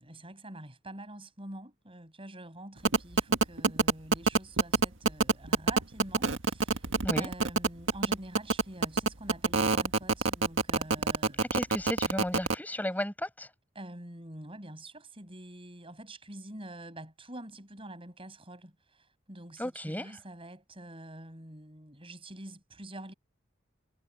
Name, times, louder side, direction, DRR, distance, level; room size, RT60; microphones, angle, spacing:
voice 1, 0.0-11.7 13.7-23.1, right 1 dB, 30° right, 6.4 m, -46 dB
sound 1, 2.8-12.5, right 3 dB, 70° right, 1.8 m, -25 dB
voice 2, 11.5-13.5 19.6-20.1, left 1 dB, 10° left, 5.5 m, -34 dB
head